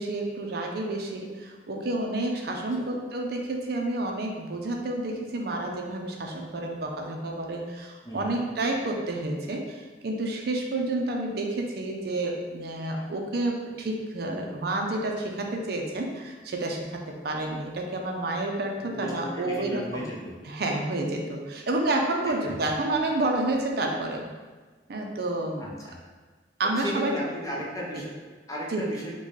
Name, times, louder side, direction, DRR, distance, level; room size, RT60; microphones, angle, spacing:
voice 1, 0.0-20.0 20.5-24.3 24.9-25.7 26.6-27.1 28.7-28.8, right 2 dB, 55° right, 1 dB, 0.5 m, -29 dB
voice 2, 8.0-8.4 18.7-20.3 22.4-22.7 25.6-26.0 26.6-28.1 28.5-29.1, equal, 20° left, -4 dB, 0.6 m, -35 dB
4.0 x 2.2 x 3.1 m, 1.4 s
head